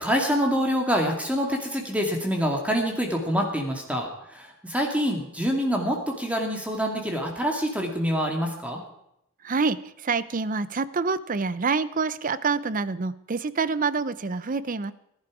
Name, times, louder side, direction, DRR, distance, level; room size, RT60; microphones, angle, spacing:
voice 1, 0.0-8.8, equal, 5° right, 1 dB, 2.1 m, -26 dB
voice 2, 9.4-14.9, right 4 dB, 40° right, 16 dB, 0.6 m, -27 dB
19.5 x 11.5 x 4.9 m, 0.79 s
head